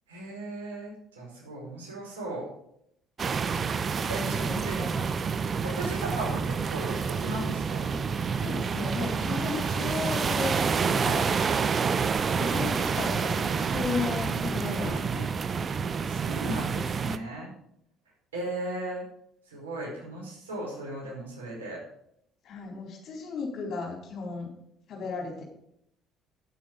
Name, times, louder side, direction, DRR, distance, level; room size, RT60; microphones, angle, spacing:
voice 1, 0.1-2.5 4.1-4.8 5.6-8.0 14.8-15.0 15.6-17.5 18.3-19.0 19.5-21.8, right 1 dB, 80° right, -3 dB, 4.9 m, -37 dB
sound 1, 3.2-17.2, right 6 dB, 35° right, 0.7 m, -28 dB
voice 2, 3.9-5.0 8.4-11.3 12.4-15.4 22.4-24.5 24.9-25.4, left 4 dB, 50° left, 0 dB, 4.5 m, -35 dB
10.0 x 8.7 x 5.5 m, 0.72 s
figure-of-eight pair, 55°, 0 cm